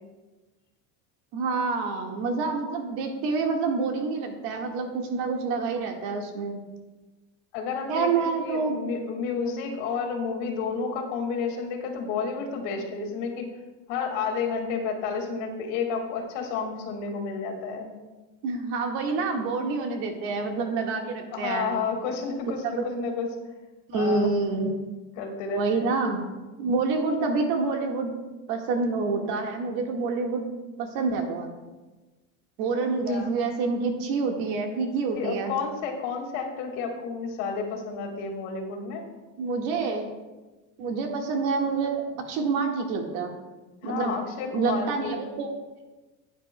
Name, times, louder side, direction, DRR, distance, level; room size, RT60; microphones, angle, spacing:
voice 1, 1.3-6.6 7.9-8.8 18.4-21.7 22.6-22.9 23.9-24.7 25.5-26.3 26.6-28.1 28.5-30.4 30.8-31.5 32.6-35.5 39.4-40.1 40.8-43.3 43.8-44.1 44.5-45.5, right 4 dB, 65° right, 2 dB, 1.7 m, -27 dB
voice 2, 7.5-13.5 13.9-17.9 21.3-23.3 23.9-24.3 25.2-25.8 33.1-33.3 35.2-39.0 43.8-45.2, left 5 dB, 80° left, 3 dB, 2.0 m, -31 dB
15.5 x 9.1 x 2.2 m, 1.2 s
cardioid pair, 180°, 36 cm